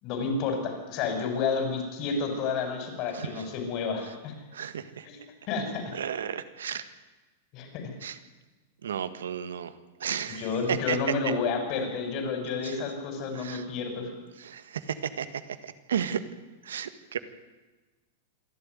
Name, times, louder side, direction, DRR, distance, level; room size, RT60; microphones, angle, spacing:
voice 1, 0.0-4.3 5.0-5.2 5.5-5.8 7.5-7.9 10.4-14.1, left 4 dB, 45° left, 5 dB, 6.2 m, -30 dB
voice 2, 3.1-3.4 4.5-5.1 5.9-6.8 8.0-8.2 8.8-9.7 10.0-11.0 11.2-11.3 12.6-12.8 13.3-13.6 14.4-16.2 16.6-17.2, right 8 dB, 80° right, 12 dB, 1.6 m, -33 dB
27.0 x 12.0 x 9.6 m, 1.2 s
hypercardioid pair, 105°, 0 cm